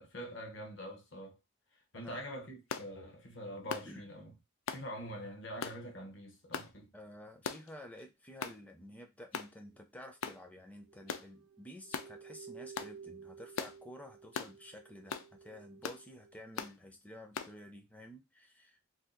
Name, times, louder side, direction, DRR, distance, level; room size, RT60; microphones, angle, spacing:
voice 1, 0.0-1.4 1.7-4.3 4.7-6.9, equal, 60° left, 0.9 m, -45 dB
sound 1, 2.7-2.9 3.7-3.9 4.7-4.9 5.6-5.8 6.5-6.7 7.4-7.7 8.4-8.6 9.3-9.5 10.2-10.4 11.1-11.3 11.9-12.1 12.7-12.9 13.6-13.8 14.3-14.5 15.1-15.3 15.8-16.0 16.6-16.7 17.3-17.5, left 6 dB, 80° left, 0.4 m, -39 dB
voice 2, 6.9-18.9, equal, 5° left, 0.5 m, -52 dB
sound 2, 10.9-16.5, right 6 dB, 60° right, 0.4 m, -54 dB
2.7 x 2.3 x 3.8 m
head